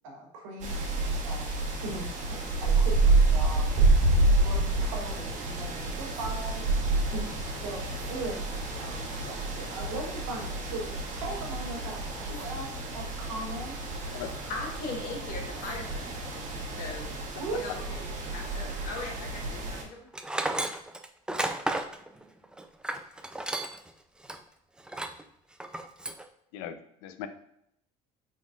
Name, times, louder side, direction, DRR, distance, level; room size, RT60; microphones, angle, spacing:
voice 1, 0.0-1.5 1.8-8.4 8.8-13.9 17.4-18.9, right 2 dB, 90° right, 1 dB, 0.9 m, -40 dB
sound 1, 0.6-19.8, right 2 dB, 50° right, 1.0 m, -29 dB
voice 2, 14.2-16.4 16.8-17.1 17.5-20.1, left 2 dB, 65° left, 1 dB, 1.1 m, -39 dB
Tools, 20.1-23.9 24.2-24.4 24.9-25.2 25.6-26.2, right 1 dB, 5° right, 0.3 m, -32 dB
voice 3, 26.5-27.3, left 9 dB, 85° left, 10 dB, 0.4 m, -39 dB
3.7 x 3.6 x 2.4 m, 0.74 s
supercardioid pair, 80°, 16 cm